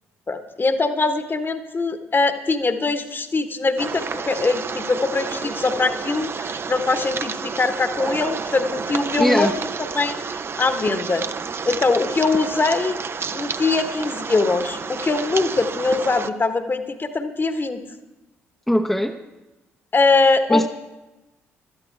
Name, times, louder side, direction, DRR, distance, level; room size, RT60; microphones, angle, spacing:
voice 1, 0.3-9.5 9.9-10.2 10.6-11.2 11.6-13.0 13.3-17.8 19.9-20.7, left 3 dB, 30° left, 9 dB, 1.2 m, -22 dB
sound 1, 3.8-16.3, right 5 dB, 35° right, 0.6 m, -30 dB
voice 2, 9.2-9.6 18.7-19.2 20.5-20.7, equal, 5° left, 3 dB, 0.7 m, -20 dB
18.5 x 12.5 x 3.4 m, 1.0 s
figure-of-eight pair, 45°, 7 cm